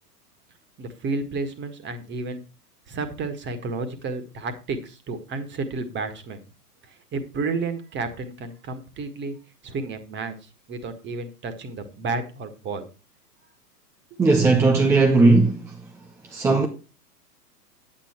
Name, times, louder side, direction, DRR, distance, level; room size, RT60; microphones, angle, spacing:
voice 1, 0.8-2.4 2.9-6.4 7.1-9.3 9.6-10.3 10.7-12.9 14.1-14.2, right 3 dB, 25° right, 1.6 m, -31 dB
voice 2, 14.2-15.6 16.3-16.7, right 3 dB, 5° right, 0.5 m, -17 dB
9.8 x 9.0 x 4.4 m
hypercardioid pair, 115°, 48 cm